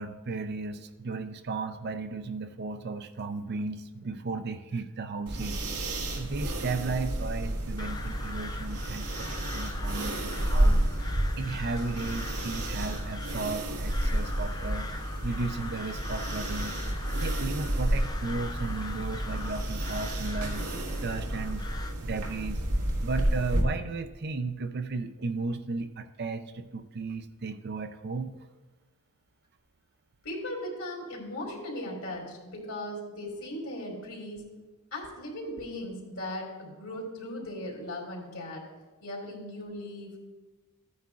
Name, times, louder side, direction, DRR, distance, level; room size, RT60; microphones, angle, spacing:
voice 1, 0.0-10.9 11.4-16.8 17.1-20.7 21.0-21.7 22.0-22.6 23.0-28.3, right 3 dB, 45° right, 9 dB, 0.5 m, -35 dB
sound 1, 5.3-23.6, right 1 dB, 85° right, 1.7 m, -31 dB
Crow, 7.8-21.9, left 3 dB, 15° left, 0.4 m, -43 dB
voice 2, 30.2-34.4 34.9-38.6 39.0-40.2, left 1 dB, 75° left, -1 dB, 2.7 m, -38 dB
14.5 x 9.4 x 2.4 m, 1.2 s
head